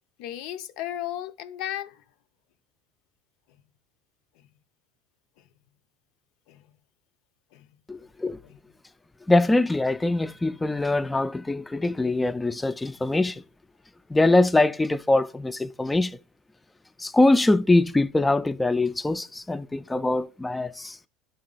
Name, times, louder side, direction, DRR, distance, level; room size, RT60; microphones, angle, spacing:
voice 1, 0.2-2.0 4.4-4.5 5.4-5.5 6.5-6.7 7.5-7.8 8.4-8.6, left 12 dB, 70° left, 0.5 m, -35 dB
voice 2, 7.9-8.4 9.3-13.4 14.1-16.2 17.0-21.0, left 2 dB, 10° left, 0.3 m, -23 dB
11.5 x 3.8 x 3.9 m
supercardioid pair, 100°, 0 cm